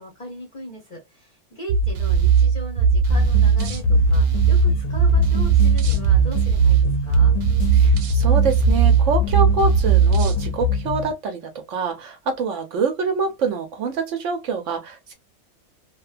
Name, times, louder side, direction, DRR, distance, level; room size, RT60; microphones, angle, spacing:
voice 1, 0.0-7.3, equal, 40° left, 0.7 m, -38 dB
sound 1, 1.7-10.4, right 7 dB, 90° right, 1.1 m, -18 dB
sound 2, 3.1-11.1, left 7 dB, 80° left, 1.1 m, -24 dB
voice 2, 7.7-15.1, right 4 dB, 65° right, 0.8 m, -26 dB
2.7 x 2.2 x 2.4 m
omnidirectional pair, 1.5 m